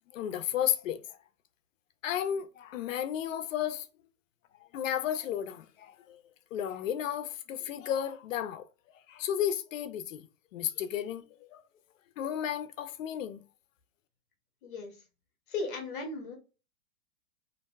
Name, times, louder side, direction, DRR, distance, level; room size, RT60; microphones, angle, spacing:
voice 1, 0.1-1.0 2.0-3.9 4.7-6.2 6.5-8.7 9.1-10.3 10.5-11.2 11.5-11.6 12.2-13.4, left 10 dB, 65° left, 0.5 m, -33 dB
voice 2, 15.5-16.4, left 3 dB, 40° left, 0.8 m, -36 dB
2.6 x 2.0 x 3.3 m
hypercardioid pair, 165°, 42 cm